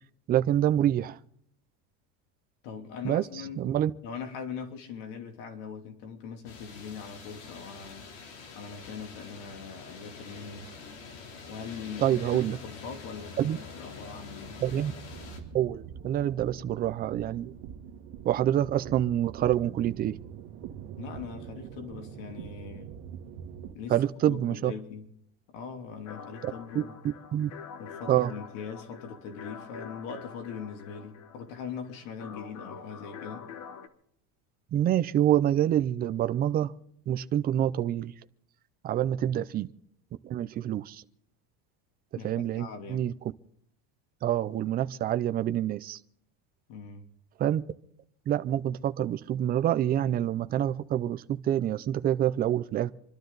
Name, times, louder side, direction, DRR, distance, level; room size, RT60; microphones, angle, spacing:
voice 1, 0.3-1.2 3.0-3.2 3.6-3.9 12.0-12.6 13.4-13.6 14.6-14.9 15.5-17.5 18.3-20.1 23.9-24.7 27.3-27.5 28.1-28.3 34.7-36.7 37.1-38.1 38.8-39.7 40.2-41.0 42.2-43.1 44.2-46.0 47.4-47.6 48.3-52.9, right 11 dB, 25° right, 0.5 m, -26 dB
voice 2, 2.6-3.6 4.0-8.1 8.5-10.7 11.5-14.6 21.0-22.9 23.7-25.1 25.5-26.9 27.8-33.5 39.2-39.4 42.1-43.1 46.7-47.0, left 6 dB, 90° left, 3.0 m, -41 dB
sound 1, 6.4-15.4, left 4 dB, 65° left, 3.5 m, -45 dB
sound 2, 14.4-23.8, right 8 dB, 60° right, 1.7 m, -44 dB
sound 3, 26.1-33.9, left 7 dB, 50° left, 1.6 m, -46 dB
27.5 x 12.5 x 4.0 m
cardioid pair, 165°, 37 cm